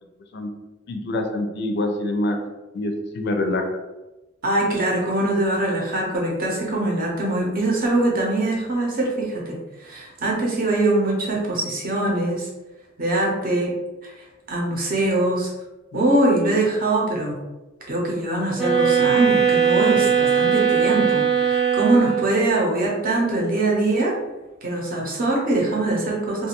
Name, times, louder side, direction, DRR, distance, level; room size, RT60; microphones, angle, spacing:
voice 1, 0.9-2.4 2.7-3.7 15.9-16.0, left 1 dB, 60° left, 5 dB, 0.4 m, -25 dB
voice 2, 4.4-12.5 13.0-13.7 14.0-14.1 14.5-15.5 15.9-17.4 17.9-24.1 24.6-26.5, right 2 dB, 50° right, -2 dB, 0.7 m, -22 dB
sound 1, 18.6-22.5, right 7 dB, ahead, 0.6 m, -19 dB
2.4 x 2.3 x 2.8 m, 1.1 s
head